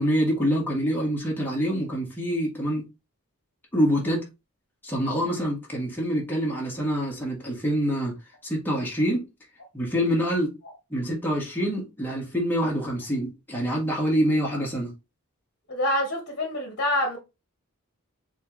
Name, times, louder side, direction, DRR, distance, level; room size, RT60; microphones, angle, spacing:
voice 1, 0.0-2.8 3.7-4.2 4.8-8.2 8.4-9.3 9.7-10.5 10.9-14.9, equal, 10° left, 1.6 m, -26 dB
voice 2, 15.7-17.2, left 1 dB, 50° left, 1.3 m, -26 dB
4.4 x 3.6 x 3.1 m
head